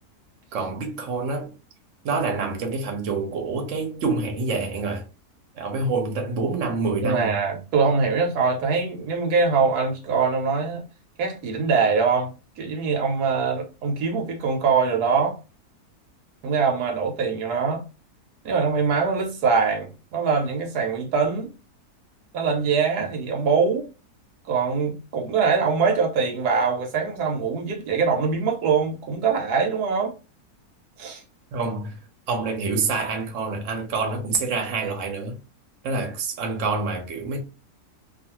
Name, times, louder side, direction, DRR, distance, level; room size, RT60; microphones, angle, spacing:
voice 1, 0.5-1.5 2.0-5.0 5.6-7.3 31.5-32.0 32.3-35.4 35.8-37.4, right 4 dB, 60° right, 1.1 m, -27 dB
voice 2, 7.0-10.8 11.2-15.4 16.4-17.8 18.4-21.5 22.3-23.9 24.5-30.1 31.0-31.2, right 5 dB, 75° right, 1.2 m, -23 dB
2.6 x 2.4 x 2.8 m
omnidirectional pair, 1.7 m